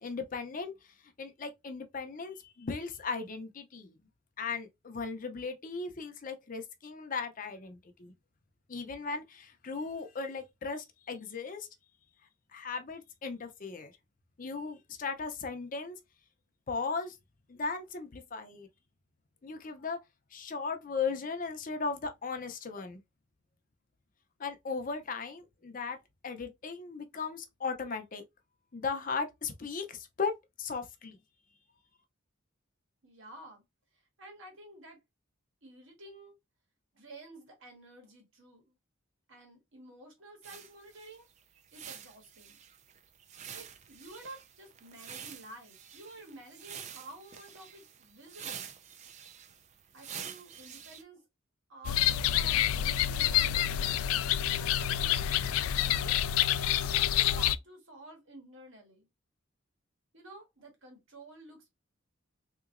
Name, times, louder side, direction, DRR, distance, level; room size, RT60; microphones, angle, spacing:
voice 1, 0.0-4.0 4.4-8.1 8.7-11.7 12.5-13.9 14.4-16.0 16.7-17.2 17.5-18.7 19.4-20.0 20.3-23.0 24.4-26.0 26.2-28.2 28.7-30.3 30.6-31.2, left 4 dB, 40° left, 0.5 m, -37 dB
voice 2, 33.0-33.6 33.9-35.0 35.6-36.3 36.9-38.7 39.3-41.3 41.7-42.6 43.5-48.7 49.9-51.2 51.7-54.0 54.5-56.1 56.8-59.1 60.1-61.7, right 2 dB, 65° right, 1.5 m, -51 dB
sound 1, 40.4-51.0, right 8 dB, 35° right, 0.4 m, -47 dB
sound 2, 51.8-57.5, left 11 dB, 85° left, 0.3 m, -27 dB
3.7 x 2.9 x 2.5 m
head